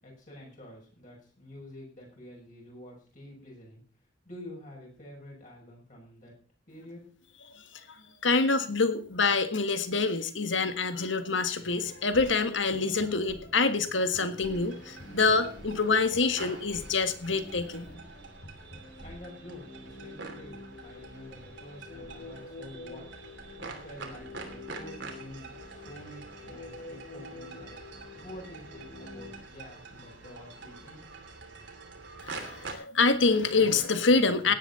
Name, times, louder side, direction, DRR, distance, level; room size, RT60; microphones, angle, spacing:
voice 1, 0.0-3.8 4.2-6.3 6.7-7.0 19.0-23.0 23.6-27.7 28.2-31.0, left 1 dB, 45° left, -3 dB, 6.6 m, -48 dB
voice 2, 8.2-17.9 32.2-34.5, left 4 dB, 80° left, 9 dB, 1.6 m, -26 dB
sound 1, 11.6-29.4, left 2 dB, 60° left, 4.8 m, -48 dB
sound 2, 14.4-32.7, right 3 dB, 70° right, 2.9 m, -46 dB
17.0 x 10.5 x 4.2 m, 0.40 s
head